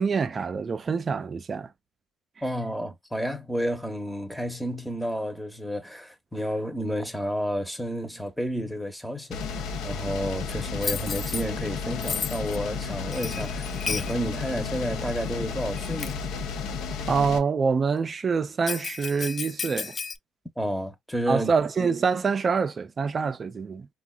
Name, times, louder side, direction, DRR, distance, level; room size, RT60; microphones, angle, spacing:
voice 1, 0.0-1.7 17.1-20.0 21.3-23.9, right 5 dB, 35° right, 0.4 m, -26 dB
voice 2, 2.4-9.4 9.8-16.2 20.6-21.5, equal, ahead, 0.8 m, -31 dB
sound 1, 9.3-17.4, left 5 dB, 75° left, 0.6 m, -32 dB
Bell, 10.8-11.4 12.0-12.6 13.1-14.1 15.1-15.2 15.8-16.2 18.6-20.2, left 6 dB, 40° left, 0.3 m, -33 dB
3.5 x 2.2 x 2.3 m
supercardioid pair, 85°, 0 cm